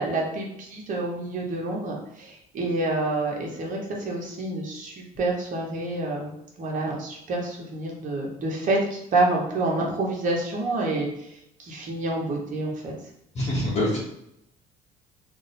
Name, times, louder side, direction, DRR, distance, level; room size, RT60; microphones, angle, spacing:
voice 1, 0.0-11.3 11.6-12.9, right 2 dB, 50° right, -1 dB, 0.9 m, -28 dB
voice 2, 13.4-14.0, left 1 dB, 45° left, -6 dB, 0.8 m, -24 dB
2.7 x 2.1 x 4.0 m, 0.79 s
cardioid pair, 110°, 17 cm